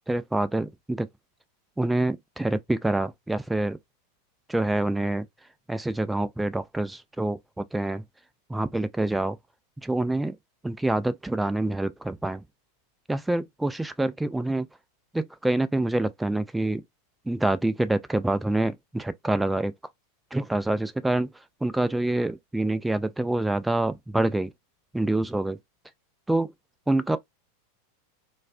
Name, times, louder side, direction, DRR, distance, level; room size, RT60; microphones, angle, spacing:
voice 1, 0.1-1.1 1.8-3.8 4.5-5.3 5.7-8.0 8.5-9.4 9.8-10.4 10.6-12.4 13.1-14.7 15.1-16.8 17.3-19.7 20.3-21.3 21.6-24.5 24.9-25.6 26.3-26.5 26.9-27.2, right 2 dB, 5° right, 0.3 m, -26 dB
2.4 x 2.2 x 2.4 m
figure-of-eight pair, 90°, 0 cm